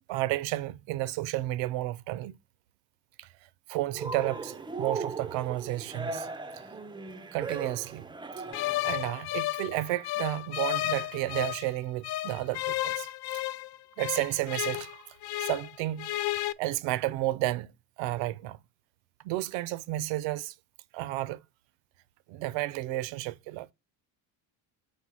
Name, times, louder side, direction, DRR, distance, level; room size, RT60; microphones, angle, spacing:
voice 1, 0.1-2.4 3.2-3.3 3.7-6.3 7.3-8.0 8.8-13.1 14.0-15.0 15.4-16.1 16.6-17.7 18.0-18.6 19.2-20.5 20.9-21.4 22.3-23.7, right 16 dB, 75° right, 0.6 m, -32 dB
Cheering, 3.9-8.9, right 4 dB, 10° right, 0.4 m, -37 dB
sound 1, 8.5-11.7 12.0-15.7 16.0-16.5, left 16 dB, 55° left, 0.5 m, -33 dB
4.5 x 4.4 x 4.7 m
cardioid pair, 115°, 46 cm